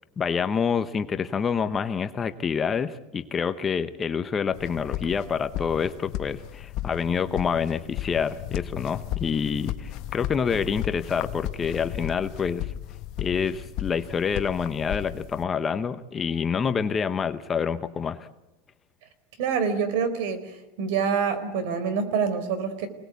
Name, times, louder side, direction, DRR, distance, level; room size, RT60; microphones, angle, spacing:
voice 1, 0.2-12.7 13.2-18.3, left 6 dB, 15° left, 10 dB, 0.8 m, -27 dB
sound 1, 4.5-15.4, left 13 dB, 40° left, 1.0 m, -35 dB
voice 2, 19.4-20.5 20.8-22.9, right 6 dB, 55° right, 12 dB, 4.2 m, -26 dB
28.0 x 19.0 x 8.4 m, 1.0 s
supercardioid pair, 165°, 0 cm